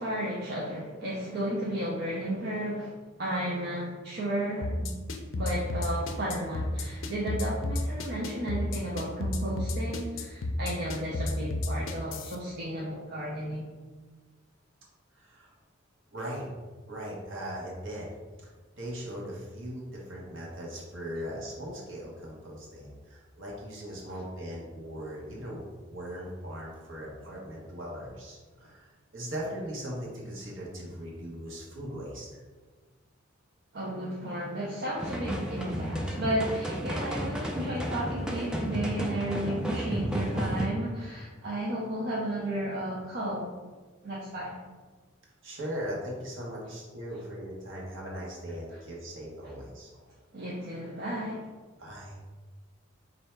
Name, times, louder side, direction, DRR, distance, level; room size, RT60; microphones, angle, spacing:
voice 1, 0.0-4.9 5.3-13.6 24.1-24.2 33.7-43.5 44.0-44.6 48.7-48.8 50.3-51.5, right 1 dB, 50° right, -5 dB, 0.6 m, -33 dB
sound 1, 4.6-12.4, left 2 dB, 70° left, 0.5 m, -31 dB
voice 2, 15.1-15.5 16.1-16.5 16.9-18.1 18.4-18.5 18.8-32.3 45.4-49.9 51.8-52.2, equal, 65° right, -4 dB, 1.2 m, -39 dB
sound 2, 35.0-40.7, right 1 dB, 5° right, 0.3 m, -32 dB
3.2 x 2.7 x 4.5 m, 1.4 s
head